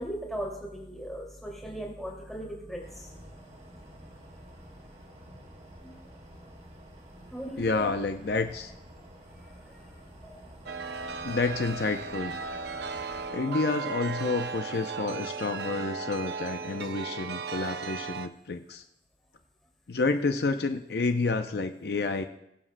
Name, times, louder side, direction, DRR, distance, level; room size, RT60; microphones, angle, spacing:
voice 1, 0.0-3.1 3.4-3.5 5.8-5.9 7.3-7.9 9.7-9.8 10.2-10.5 12.4-13.2, equal, ahead, -3 dB, 2.4 m, -39 dB
sound 1, 2.8-13.3, equal, 40° right, 1.9 m, -50 dB
voice 2, 7.6-8.7 11.2-12.4 13.3-18.8 19.9-22.2, left 3 dB, 60° left, 7 dB, 0.5 m, -29 dB
Chime, 10.7-18.3, right 5 dB, 65° right, 0.5 m, -36 dB
21.5 x 7.3 x 2.2 m, 0.83 s
head